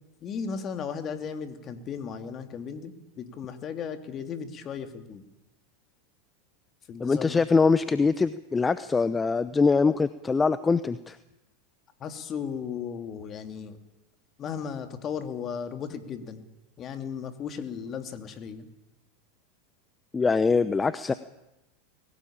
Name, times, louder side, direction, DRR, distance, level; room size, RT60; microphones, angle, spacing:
voice 1, 0.2-5.2 6.9-7.4 12.0-13.8 14.4-16.4 16.8-18.7, left 6 dB, 35° left, 7 dB, 2.8 m, -36 dB
voice 2, 7.0-11.2 20.1-21.1, left 4 dB, 15° left, 14 dB, 0.8 m, -23 dB
21.0 x 17.5 x 8.8 m, 0.97 s
hypercardioid pair, 95°, 0 cm